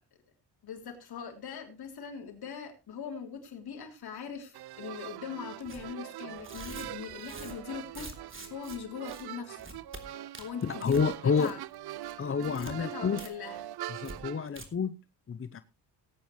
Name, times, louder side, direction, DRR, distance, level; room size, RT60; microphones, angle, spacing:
voice 1, 0.6-9.6 10.4-11.6 12.3-13.6, left 7 dB, 65° left, 3 dB, 3.5 m, -41 dB
sound 1, 4.5-14.5, right 13 dB, 70° right, 0.6 m, -43 dB
Tearing, 5.7-5.8 6.4-8.8 9.1-9.2 9.6-10.0 10.3-11.1 11.4-11.7 12.0-12.7 13.2-13.3 13.6-13.7 14.0-14.2 14.5-14.7, right 2 dB, 30° right, 3.1 m, -45 dB
voice 2, 10.6-11.5 12.2-13.2 13.9-14.9 15.3-15.6, left 6 dB, 30° left, 12 dB, 0.7 m, -29 dB
18.5 x 9.0 x 3.1 m, 0.27 s
cardioid pair, 80°, 41 cm